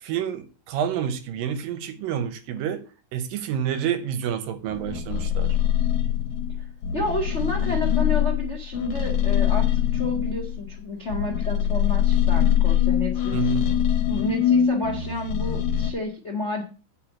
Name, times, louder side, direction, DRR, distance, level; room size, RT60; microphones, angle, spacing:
voice 1, 0.0-2.8 3.1-5.6 13.3-13.7, right 9 dB, 75° right, 2.3 m, -28 dB
sound 1, 4.7-10.7 11.1-15.9, left 10 dB, 60° left, 2.2 m, -23 dB
voice 2, 6.9-13.5 14.1-16.6, left 2 dB, 80° left, 0.6 m, -30 dB
8.7 x 4.8 x 7.3 m
omnidirectional pair, 4.5 m